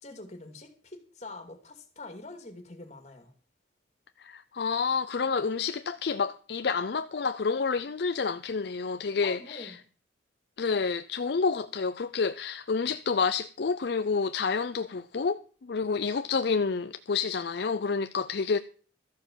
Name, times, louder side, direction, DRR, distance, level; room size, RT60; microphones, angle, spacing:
voice 1, 0.0-3.3 9.2-9.8, left 2 dB, 35° left, 2.5 m, -45 dB
voice 2, 4.2-9.8 10.6-18.6, left 5 dB, 60° left, 0.5 m, -29 dB
13.5 x 6.9 x 7.3 m
head